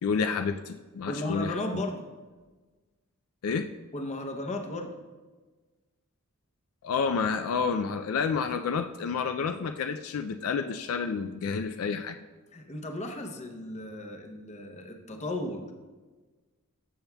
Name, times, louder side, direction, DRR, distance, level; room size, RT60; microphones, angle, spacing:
voice 1, 0.0-1.8 3.4-3.7 6.8-12.2, left 5 dB, 70° left, 7 dB, 0.4 m, -29 dB
voice 2, 1.0-2.1 3.9-5.0 12.5-15.7, left 1 dB, 30° left, 5 dB, 0.7 m, -35 dB
12.5 x 7.0 x 2.2 m, 1.3 s
head